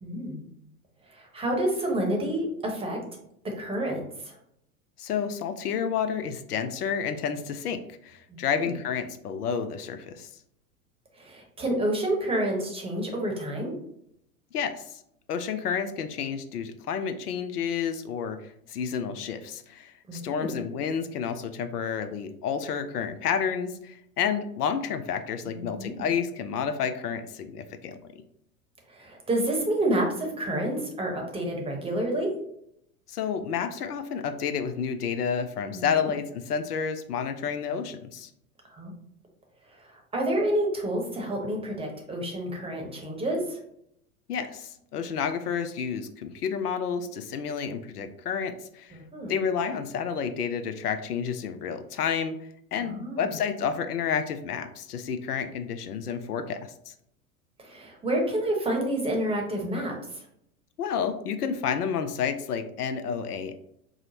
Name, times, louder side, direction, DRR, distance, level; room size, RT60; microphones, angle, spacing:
voice 1, 0.0-0.4 1.1-3.0 3.4-4.4 8.3-8.8 11.1-13.7 20.1-20.5 25.5-26.1 28.9-32.3 35.7-36.1 38.7-38.9 39.7-43.6 48.9-49.4 52.8-53.4 57.6-60.2, right 1 dB, 15° right, 1 dB, 0.8 m, -29 dB
voice 2, 5.0-10.3 14.5-15.0 15.3-28.0 33.1-38.3 44.3-49.0 49.3-52.4 52.7-56.6 56.9-57.0 60.8-63.6, left 7 dB, 80° left, 9 dB, 0.5 m, -30 dB
4.8 x 2.0 x 2.8 m, 0.73 s
hypercardioid pair, 90°, 45 cm